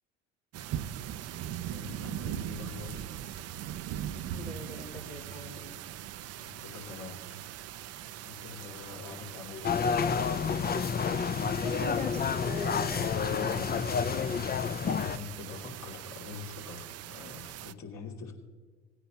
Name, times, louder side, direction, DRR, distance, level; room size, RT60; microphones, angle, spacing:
sound 1, 0.5-17.7, right 11 dB, 50° right, 0.6 m, -41 dB
voice 1, 1.5-3.0 6.3-7.4 8.2-9.7 14.7-18.3, left 5 dB, 55° left, 0 dB, 2.7 m, -45 dB
voice 2, 4.1-5.7 11.6-13.1 13.3-13.7, left 3 dB, 75° left, -2 dB, 3.1 m, -40 dB
sound 2, 9.6-15.2, left 6 dB, 30° left, 0.6 m, -29 dB
18.0 x 9.7 x 2.9 m, 1.4 s
hypercardioid pair, 60°, 33 cm